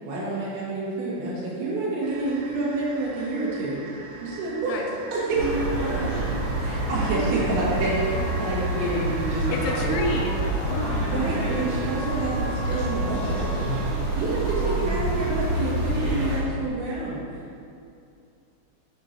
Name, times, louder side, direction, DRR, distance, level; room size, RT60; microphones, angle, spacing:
voice 1, 0.0-3.8 4.2-4.8 5.1-5.6 6.6-10.0 11.1-13.7 14.2-17.2, right 2 dB, 70° right, -7 dB, 3.8 m, -28 dB
sound 1, 2.0-10.0, right 3 dB, 90° right, 3.7 m, -44 dB
sound 2, 5.3-16.4, right 1 dB, 55° right, 2.7 m, -27 dB
Trumpet, 7.7-14.0, left 1 dB, 60° left, 2.0 m, -41 dB
voice 2, 9.5-11.0 11.7-11.8, left 3 dB, 85° left, 1 dB, 3.2 m, -30 dB
10.5 x 5.9 x 2.9 m, 2.5 s
omnidirectional pair, 5.8 m